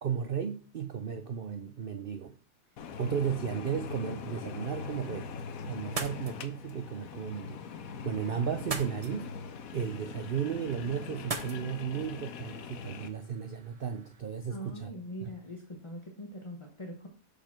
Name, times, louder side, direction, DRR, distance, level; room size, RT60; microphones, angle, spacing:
voice 1, 0.0-2.4 3.0-5.3 5.7-9.4 9.7-14.9 15.2-15.3, right 7 dB, 85° right, 0.4 m, -34 dB
sound 1, 2.8-13.1, left 6 dB, 65° left, 1.1 m, -42 dB
sound 2, 5.8-14.2, right 4 dB, 35° right, 0.6 m, -44 dB
voice 2, 14.5-17.1, equal, 20° left, 1.0 m, -42 dB
6.8 x 5.1 x 5.9 m
omnidirectional pair, 1.7 m